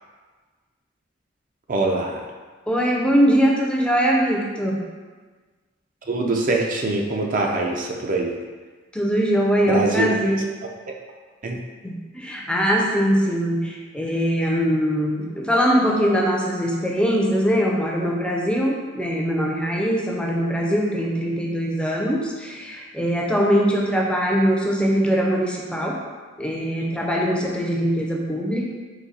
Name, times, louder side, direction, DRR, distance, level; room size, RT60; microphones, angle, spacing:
voice 1, 1.7-2.2 6.1-8.4 9.7-10.1 10.9-11.0 11.4-11.6, right 2 dB, 45° right, 0 dB, 0.5 m, -23 dB
voice 2, 2.7-4.8 8.9-10.4 11.8-26.0 26.4-28.7, equal, 5° left, -2 dB, 0.5 m, -22 dB
4.0 x 2.7 x 4.1 m, 1.4 s
head